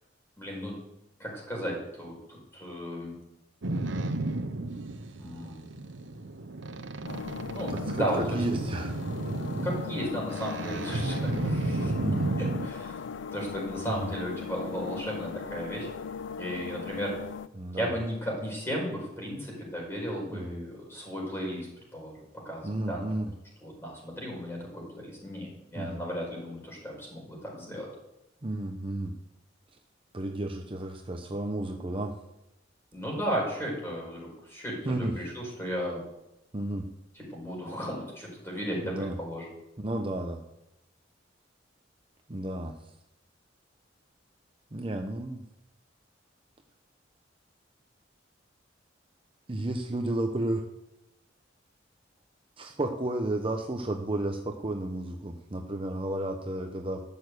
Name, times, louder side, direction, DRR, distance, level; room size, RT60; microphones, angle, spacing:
voice 1, 0.4-0.8 1.2-3.2 5.2-5.6 7.5-8.4 9.5-11.9 12.4-15.9 16.4-17.2 17.7-21.7 21.9-23.0 23.6-27.9 32.9-36.0 37.1-39.5, equal, 15° left, -3 dB, 5.4 m, -35 dB
Boat Water vehicle, 3.6-12.7, right 2 dB, 70° right, 0.9 m, -33 dB
sound 1, 7.1-17.5, left 6 dB, 70° left, 0.4 m, -39 dB
voice 2, 7.7-9.0 12.0-12.3 13.9-14.1 17.5-17.9 20.3-20.6 22.6-23.3 25.8-26.0 28.4-29.1 30.1-32.2 34.8-35.2 36.5-36.9 38.8-39.1 39.8-40.4 42.3-42.7 44.7-45.4 49.5-50.6 52.6-57.1, right 1 dB, 30° right, 4 dB, 0.8 m, -32 dB
12.5 x 6.9 x 8.0 m, 0.89 s
head